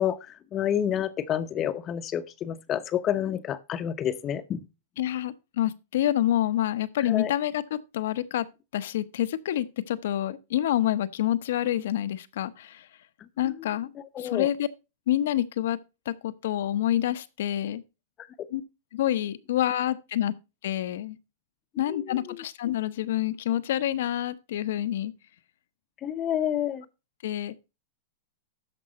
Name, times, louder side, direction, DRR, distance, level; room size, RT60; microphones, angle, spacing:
voice 1, 0.0-4.7 7.1-7.3 13.4-13.5 14.1-14.5 18.4-18.5 21.9-22.4 26.0-26.8, left 10 dB, 30° left, 0.7 m, -29 dB
voice 2, 5.0-8.5 8.7-12.9 13.4-13.9 14.2-14.7 15.1-15.8 16.1-17.8 18.5-18.6 18.9-20.3 20.6-21.2 21.8-25.1 27.2-27.5, left 12 dB, 75° left, 0.8 m, -27 dB
13.0 x 5.3 x 4.1 m
hypercardioid pair, 140°, 0 cm